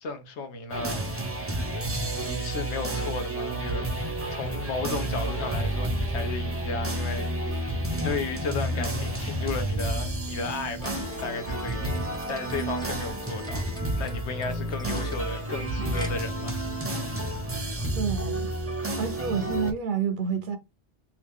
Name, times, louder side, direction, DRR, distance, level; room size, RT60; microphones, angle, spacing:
voice 1, 0.0-1.0 1.5-1.7 2.2-4.0 4.3-13.7 14.0-16.6, left 3 dB, 90° left, 1.1 m, -34 dB
sound 1, 0.7-19.7, right 1 dB, 15° right, 0.5 m, -30 dB
sound 2, 10.8-16.1, equal, 5° left, 0.9 m, -42 dB
voice 2, 17.9-18.5 19.0-20.6, right 6 dB, 55° right, 0.6 m, -29 dB
2.9 x 2.4 x 3.5 m
omnidirectional pair, 1.1 m